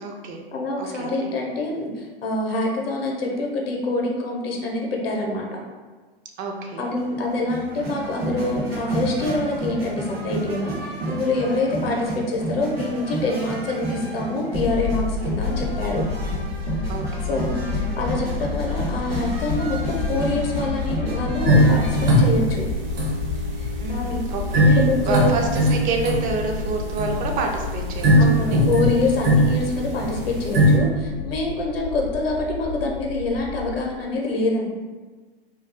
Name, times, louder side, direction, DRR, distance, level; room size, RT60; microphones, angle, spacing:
voice 1, 0.0-0.4 0.8-1.3 6.4-6.9 16.9-17.4 23.8-28.6, right 3 dB, 30° right, 2 dB, 0.4 m, -28 dB
voice 2, 0.5-5.4 6.8-10.8 11.1-16.0 17.3-17.6 18.0-22.7 23.6-24.3 24.6-25.2 28.2-34.7, left 2 dB, 75° left, -1 dB, 0.7 m, -26 dB
sound 1, 7.0-22.1, right 2 dB, 85° right, 0.9 m, -30 dB
sound 2, 14.5-33.8, left 5 dB, 30° left, 0.4 m, -30 dB
sound 3, 21.5-30.8, equal, 50° right, 1.0 m, -21 dB
2.3 x 2.3 x 3.3 m, 1.4 s
hypercardioid pair, 95°, 30 cm